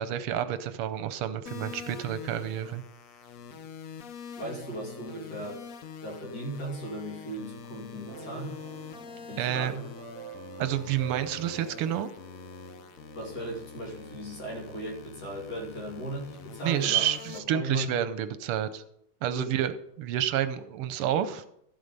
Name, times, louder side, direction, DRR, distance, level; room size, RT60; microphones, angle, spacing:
voice 1, 0.0-2.8 9.4-9.7 10.6-12.1 16.6-18.8 19.2-19.7 20.0-21.4, right 10 dB, 85° right, 12 dB, 1.6 m, -29 dB
sound 1, 1.5-17.4, left 7 dB, 70° left, 0.8 m, -45 dB
voice 2, 4.4-5.6 6.0-8.5 9.3-9.8 13.1-17.9 19.4-19.5, right 1 dB, 45° left, -2 dB, 3.4 m, -37 dB
Keyboard (musical), 8.1-15.6, right 7 dB, 55° right, 4.3 m, -47 dB
13.0 x 7.7 x 5.3 m, 0.74 s
omnidirectional pair, 2.4 m